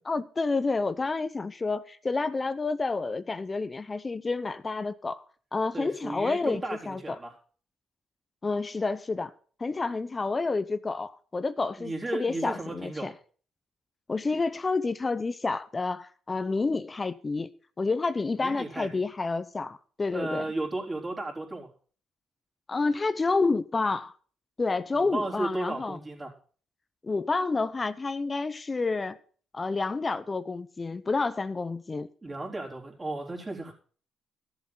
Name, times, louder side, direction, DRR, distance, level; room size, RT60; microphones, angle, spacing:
voice 1, 0.1-5.2 5.5-7.2 8.4-9.3 9.6-13.1 14.1-17.5 17.8-20.5 22.7-24.1 24.6-26.0 27.0-29.2 29.5-32.1, left 3 dB, 30° left, 0.7 m, -29 dB
voice 2, 5.7-7.3 11.8-13.1 18.4-19.0 20.1-21.7 24.9-26.3 32.2-33.7, right 2 dB, 25° right, 3.7 m, -34 dB
13.5 x 7.4 x 5.8 m
cardioid pair, 90°, 0 cm